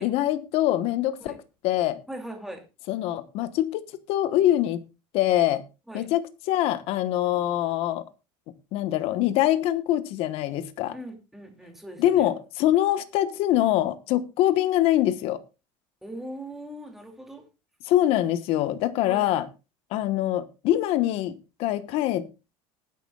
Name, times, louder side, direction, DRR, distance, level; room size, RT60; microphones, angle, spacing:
voice 1, 0.0-1.4 1.6-2.0 2.9-4.8 5.1-5.6 5.9-8.1 8.7-10.9 12.0-15.4 17.8-19.5 19.9-22.2, left 13 dB, 55° left, 1.2 m, -24 dB
voice 2, 2.1-2.6 5.9-6.1 10.9-12.3 16.0-17.4 19.1-19.3, right 1 dB, ahead, 2.7 m, -40 dB
19.5 x 9.5 x 2.3 m
cardioid pair, 145°, 12 cm